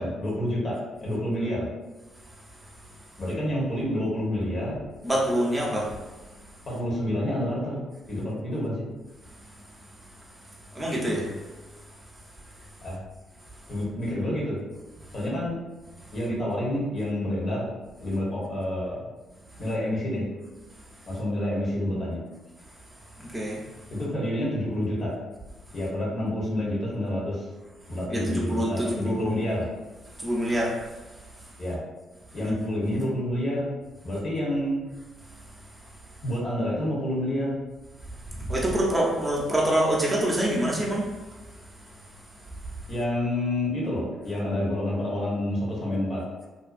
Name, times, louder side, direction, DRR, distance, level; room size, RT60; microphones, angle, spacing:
voice 1, 0.0-1.7 3.2-4.8 6.7-7.8 8.1-8.8 12.8-13.0 13.7-14.6 15.1-15.6 16.1-17.7 18.0-19.1 19.6-20.3 21.1-22.2 23.9-25.1 25.7-27.5 27.9-29.7 31.6-31.8 32.3-33.7 34.0-34.8 36.2-37.6 42.9-46.2, left 1 dB, 50° left, -5 dB, 1.0 m, -28 dB
voice 2, 5.0-5.9 10.7-11.3 23.2-23.6 28.1-29.3 30.2-30.8 32.4-32.6 38.5-41.1, right 1 dB, 20° right, -3 dB, 0.7 m, -25 dB
2.6 x 2.3 x 2.5 m, 1.2 s
hypercardioid pair, 45°, 0 cm